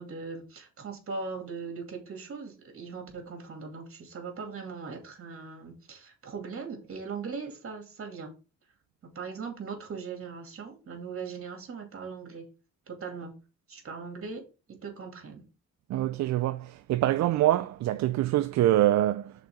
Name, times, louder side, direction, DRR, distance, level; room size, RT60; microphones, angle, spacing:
voice 1, 0.0-8.3 9.1-12.4 12.9-13.3 13.7-14.4 14.8-15.4, right 5 dB, 45° right, 2.7 m, -39 dB
voice 2, 15.9-19.3, right 14 dB, 65° right, 0.5 m, -25 dB
5.9 x 4.3 x 5.0 m
cardioid pair, 90°, 30 cm